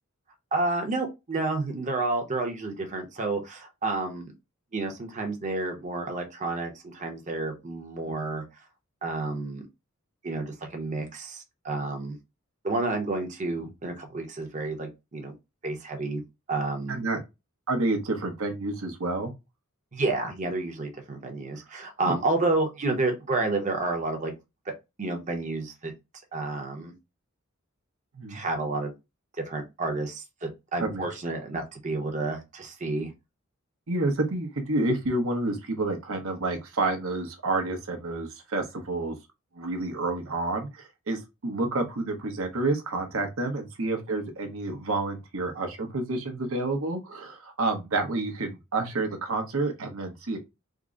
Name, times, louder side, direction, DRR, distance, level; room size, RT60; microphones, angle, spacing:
voice 1, 0.5-4.3 4.7-8.4 9.0-9.6 10.2-12.2 12.6-15.3 15.6-16.2 16.5-17.0 19.9-24.3 25.0-25.9 26.3-26.9 28.3-28.9 29.5-33.1, right 2 dB, 35° right, 0.7 m, -30 dB
voice 2, 16.9-17.2 17.7-19.3 22.1-22.2 28.1-28.4 30.8-31.1 33.9-39.2 39.5-50.4, right 2 dB, 70° right, 0.8 m, -29 dB
3.6 x 2.0 x 3.6 m
head